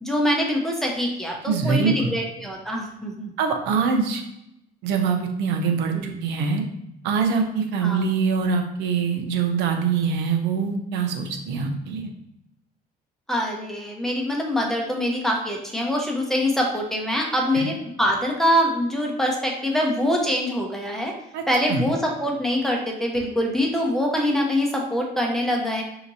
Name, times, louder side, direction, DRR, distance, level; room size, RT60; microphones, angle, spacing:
voice 1, 0.0-3.3 5.9-6.1 7.8-8.0 13.3-21.1 21.5-25.8, equal, ahead, -1 dB, 0.9 m, -24 dB
voice 2, 1.5-2.1 3.4-4.2 4.8-6.6 7.0-12.1 17.5-17.7 21.3-21.4 21.7-21.9, right 5 dB, 90° right, 4 dB, 0.8 m, -24 dB
5.8 x 3.0 x 2.7 m, 0.81 s
cardioid pair, 110°, 17 cm